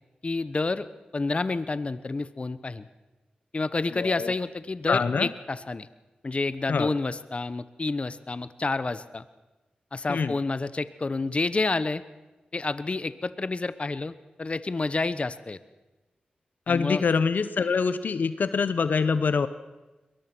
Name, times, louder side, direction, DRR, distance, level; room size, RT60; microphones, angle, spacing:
voice 1, 0.2-0.9 1.1-2.9 3.5-5.9 6.2-9.2 9.9-12.0 12.5-15.6 16.7-17.0, left 3 dB, 40° left, 14 dB, 0.9 m, -29 dB
voice 2, 4.0-4.3 4.9-5.3 6.7-6.9 10.1-10.3 16.7-19.5, left 5 dB, 75° left, 13 dB, 0.8 m, -25 dB
22.5 x 20.5 x 6.1 m, 1.1 s
cardioid pair, 70°, 3 cm